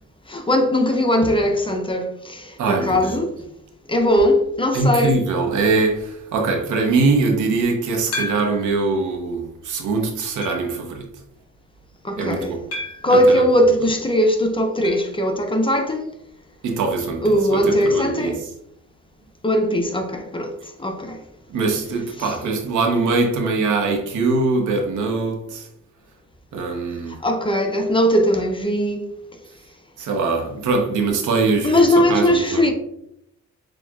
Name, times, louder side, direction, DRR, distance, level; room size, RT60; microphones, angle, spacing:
voice 1, 0.3-3.3 3.9-5.2 12.0-12.5 13.0-16.1 17.2-18.4 19.4-20.5 20.8-21.2 22.2-22.3 27.2-29.0 31.6-32.7, equal, 15° left, 0.5 m, -19 dB
voice 2, 2.6-3.3 4.7-11.1 12.2-12.7 13.1-13.9 16.6-18.5 21.5-25.7 26.5-27.2 30.0-32.7, right 3 dB, 75° right, 0.9 m, -22 dB
sound 1, 8.1-8.8 9.4-9.5 10.4-10.8 12.7-13.2 14.8-15.1 15.4-15.5 15.8-15.9 17.9-18.0, left 2 dB, 50° left, 1.0 m, -31 dB
6.1 x 2.4 x 2.4 m
cardioid pair, 90°, 30 cm